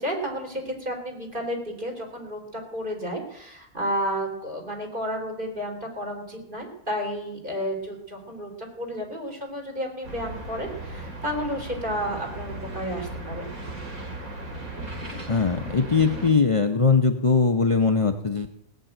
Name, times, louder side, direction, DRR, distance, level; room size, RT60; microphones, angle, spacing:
voice 1, 0.0-13.5, equal, 35° right, 0 dB, 3.7 m, -32 dB
sound 1, 10.0-16.3, right 2 dB, 75° right, 2.9 m, -36 dB
voice 2, 15.3-18.5, left 4 dB, 35° left, 6 dB, 0.5 m, -21 dB
17.5 x 6.7 x 8.9 m, 0.80 s
omnidirectional pair, 1.5 m